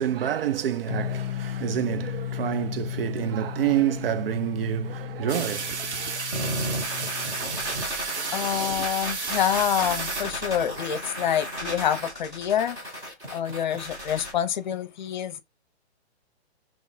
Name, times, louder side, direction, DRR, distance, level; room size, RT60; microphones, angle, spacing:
voice 1, 0.0-6.2, right 10 dB, 60° right, 0.5 m, -28 dB
sound 1, 0.9-7.7, left 11 dB, 85° left, 0.5 m, -35 dB
sound 2, 5.3-10.8, right 5 dB, 90° right, 1.1 m, -32 dB
sound 3, 6.3-14.3, equal, 10° right, 0.6 m, -34 dB
voice 2, 8.3-12.9 13.3-15.4, left 9 dB, 45° left, 0.7 m, -27 dB
3.7 x 3.1 x 2.7 m
hypercardioid pair, 160°, 33 cm